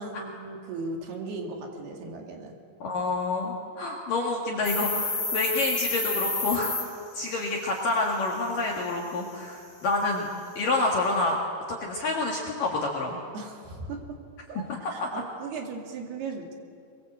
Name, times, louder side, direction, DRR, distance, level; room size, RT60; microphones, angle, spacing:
voice 1, 0.0-2.5 13.3-14.2 14.5-16.5, right 3 dB, 55° right, 2 dB, 4.2 m, -37 dB
voice 2, 2.8-6.8 7.1-10.3 10.6-11.4 11.7-13.2 14.7-15.1, left 2 dB, 55° left, -1 dB, 2.8 m, -28 dB
sound 1, 4.6-6.8, left 3 dB, 20° left, 3.1 m, -29 dB
24.0 x 22.5 x 8.0 m, 2.3 s
omnidirectional pair, 5.9 m